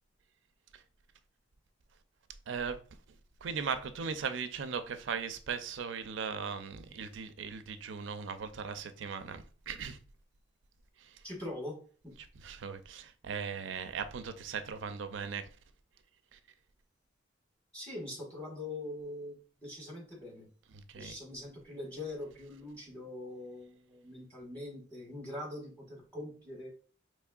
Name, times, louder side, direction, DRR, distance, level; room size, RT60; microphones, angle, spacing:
voice 1, 2.5-2.8 3.4-10.0 11.0-11.2 12.4-15.5 16.3-16.4 20.7-21.1, right 6 dB, 70° right, 0.4 m, -38 dB
voice 2, 11.2-11.8 12.0-12.1 17.7-19.3 19.6-20.5 20.9-26.7, left 1 dB, 5° left, 1.5 m, -43 dB
4.4 x 3.1 x 2.3 m
head